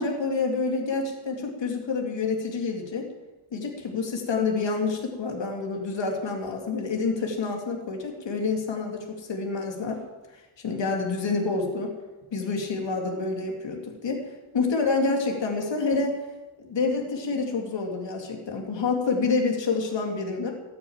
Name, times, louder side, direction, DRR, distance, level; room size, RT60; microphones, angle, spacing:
voice 1, 0.0-3.1 3.5-10.0 10.6-11.9 12.3-14.2 14.5-16.2 16.6-20.5, left 4 dB, 65° left, 1 dB, 2.7 m, -28 dB
14.5 x 9.5 x 8.9 m, 1.1 s
wide cardioid pair, 115°, 47 cm